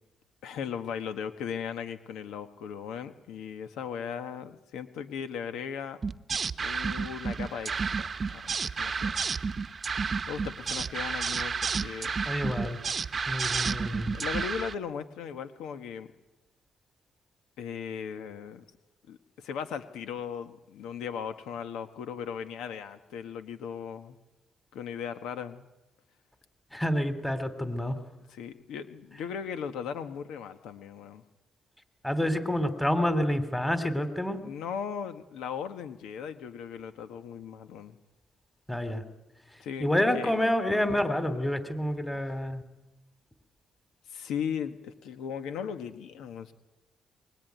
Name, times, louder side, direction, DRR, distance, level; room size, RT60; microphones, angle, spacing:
voice 1, 0.4-6.0 6.6-7.7 8.0-9.3 10.0-12.1 13.5-13.6 14.1-16.1 17.6-18.6 19.1-24.2 24.7-25.7 28.3-31.2 34.4-38.0 39.6-40.5 42.1-42.2 44.1-46.5, left 7 dB, 85° left, 9 dB, 1.4 m, -37 dB
sound 1, 6.0-14.7, right 5 dB, 40° right, 0.9 m, -31 dB
voice 2, 12.3-12.8 13.3-14.1 26.7-28.0 32.0-34.4 38.7-39.0 39.8-42.6, left 1 dB, 10° left, 10 dB, 2.9 m, -28 dB
23.0 x 21.5 x 9.4 m, 1.0 s
cardioid pair, 90°, 0 cm